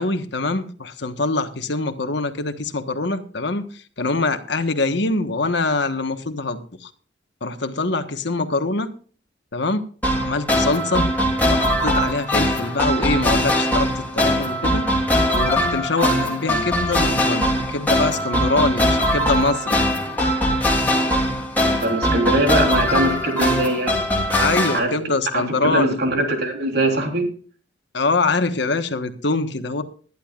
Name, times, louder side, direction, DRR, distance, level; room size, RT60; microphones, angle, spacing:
voice 1, 0.0-6.9 7.4-8.9 9.5-9.8 10.1-11.1 11.4-15.1 15.3-19.8 24.3-26.0 27.9-29.8, left 3 dB, 65° left, 9 dB, 1.3 m, -24 dB
sound 1, 10.0-24.8, equal, 10° left, 3.1 m, -21 dB
voice 2, 21.6-24.0 24.7-25.0 25.3-27.3, right 1 dB, 60° right, 3 dB, 3.5 m, -22 dB
20.5 x 11.0 x 2.5 m, 0.41 s
head